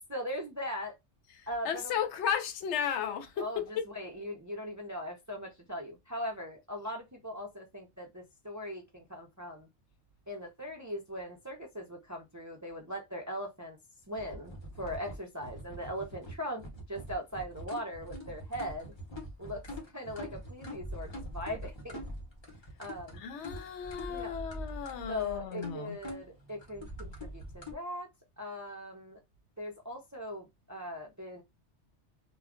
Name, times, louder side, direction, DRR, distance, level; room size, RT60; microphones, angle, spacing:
voice 1, 0.1-1.0 1.5-2.0 3.4-9.7 10.3-13.8 14.1-18.9 19.4-22.0 22.8-23.2 24.1-24.3 25.1-28.1 28.4-29.2 29.6-31.4, equal, 25° right, 0.4 m, -40 dB
voice 2, 1.4-3.8 23.1-26.0, left 8 dB, 80° left, 0.9 m, -34 dB
sound 1, 14.1-27.7, equal, 25° left, 0.8 m, -44 dB
2.3 x 2.2 x 3.6 m
omnidirectional pair, 1.2 m